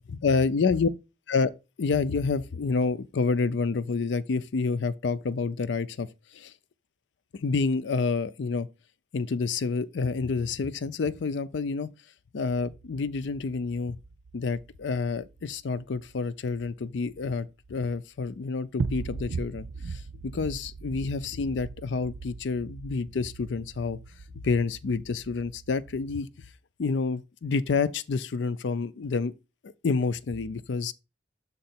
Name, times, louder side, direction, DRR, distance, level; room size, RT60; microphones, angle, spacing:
voice 1, 0.1-0.9 1.3-1.5 1.8-6.1 6.3-6.5 7.3-8.7 9.1-11.9 12.3-14.0 14.3-24.0 24.3-26.3 26.8-29.3 29.6-30.9, left 4 dB, 85° left, 0.5 m, -28 dB
sound 1, 12.5-17.9 18.2-18.4 18.8-26.2, right 4 dB, 70° right, 0.4 m, -40 dB
6.6 x 3.8 x 4.3 m
head